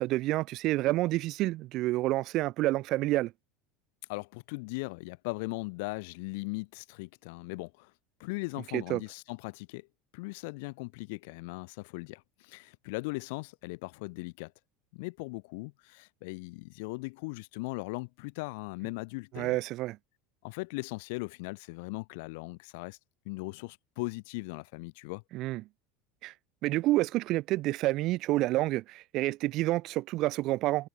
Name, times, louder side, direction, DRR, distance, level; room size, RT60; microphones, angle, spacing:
voice 1, 0.0-3.3 8.7-9.0 19.3-20.0 25.3-25.6 26.2-26.3 26.6-30.9, right 17 dB, 55° right, 0.6 m, -28 dB
voice 2, 4.1-7.9 8.2-9.9 10.1-14.5 14.9-19.6 20.4-23.0 23.3-25.2, left 27 dB, 70° left, 0.5 m, -39 dB
hypercardioid pair, 90°, 0 cm